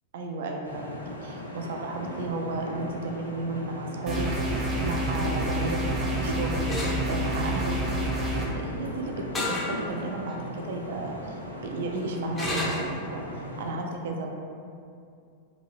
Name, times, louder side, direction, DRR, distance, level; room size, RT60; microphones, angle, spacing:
voice 1, 0.1-6.7 7.0-7.8 8.4-13.3 13.6-14.3, right 2 dB, 55° right, 1 dB, 0.3 m, -34 dB
sound 1, 0.6-13.7, equal, 85° left, 0.3 m, -38 dB
sound 2, 4.1-8.5, right 1 dB, 25° right, 0.6 m, -28 dB
sound 3, 6.7-7.0 9.3-9.7 10.3-10.4 12.4-12.9, left 1 dB, 20° left, 0.5 m, -29 dB
2.7 x 2.6 x 2.9 m, 2.4 s
figure-of-eight pair, 90°, 0 cm